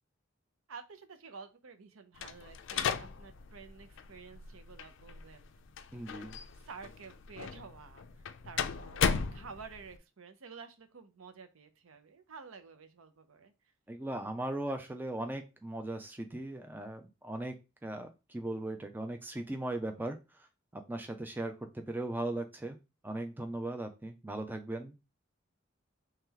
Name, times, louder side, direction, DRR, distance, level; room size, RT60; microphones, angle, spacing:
voice 1, 0.7-5.5 6.6-8.1 8.4-13.5, right 5 dB, 90° right, 10 dB, 0.6 m, -51 dB
sound 1, 2.2-10.0, left 6 dB, 60° left, 0.4 m, -37 dB
voice 2, 5.9-6.4 13.9-20.2 20.7-22.8 23.0-25.0, right 1 dB, 10° right, 6 dB, 0.4 m, -38 dB
3.2 x 2.9 x 3.7 m, 0.27 s
head